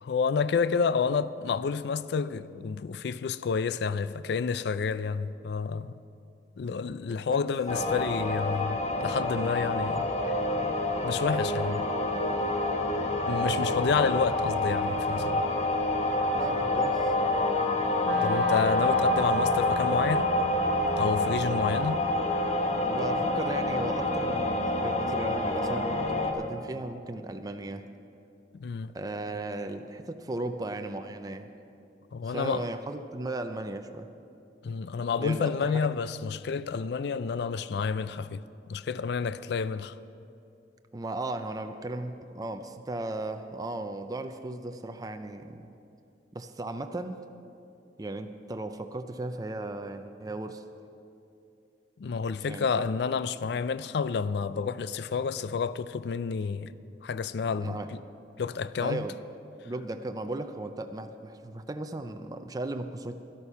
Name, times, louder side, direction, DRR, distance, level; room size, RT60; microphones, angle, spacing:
voice 1, 0.0-5.9 6.6-10.1 11.0-11.9 13.3-15.4 18.2-20.3 21.0-22.1 28.5-28.9 32.1-32.7 34.6-38.4 38.7-39.9 52.0-56.7 57.0-58.0 58.4-59.1, left 5 dB, 65° left, 0.4 m, -29 dB
sound 1, 7.7-26.3, left 1 dB, 40° left, 1.1 m, -27 dB
voice 2, 16.3-17.1 22.8-27.8 28.9-31.5 32.2-34.1 35.2-35.9 40.9-45.7 46.3-47.2 48.0-50.6 52.5-52.9 57.5-57.9 58.8-59.1 59.6-63.1, right 2 dB, 20° right, 0.5 m, -36 dB
Wind instrument woodwind instrument, 18.0-25.2, right 2 dB, 80° right, 0.6 m, -40 dB
12.5 x 11.5 x 5.6 m
head